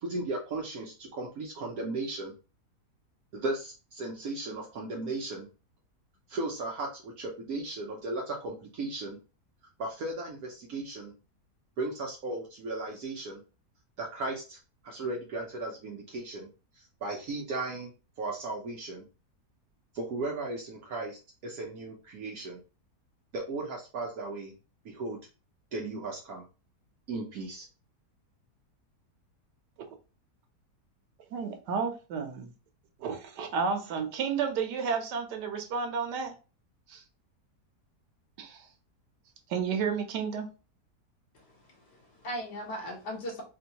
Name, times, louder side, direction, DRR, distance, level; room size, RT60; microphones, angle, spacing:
voice 1, 0.0-2.3 3.3-5.5 6.3-9.2 9.8-11.1 11.8-13.4 14.0-14.6 14.8-16.5 16.8-17.9 18.2-19.0 19.9-22.6 23.3-24.5 24.8-25.2 25.7-26.4 27.1-27.6, right 2 dB, 65° right, 1.2 m, -36 dB
voice 2, 31.3-32.5 33.0-36.4 36.9-37.0 38.4-38.7 39.5-40.5, right 6 dB, 85° right, 1.3 m, -32 dB
voice 3, 41.3-43.4, equal, 80° left, 1.8 m, -39 dB
4.3 x 2.3 x 2.8 m
omnidirectional pair, 1.8 m